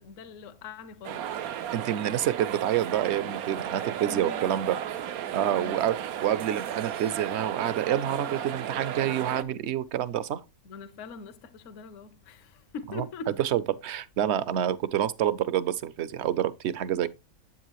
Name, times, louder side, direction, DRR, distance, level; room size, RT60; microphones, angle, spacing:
voice 1, 0.0-1.9 4.1-4.6 5.5-5.9 10.6-13.4, left 4 dB, 65° left, 1.1 m, -43 dB
sound 1, 1.0-9.4, right 10 dB, 85° right, 1.2 m, -34 dB
voice 2, 1.7-4.8 5.3-10.4 13.5-17.1, right 11 dB, 60° right, 0.8 m, -28 dB
8.0 x 7.4 x 2.9 m
omnidirectional pair, 1.5 m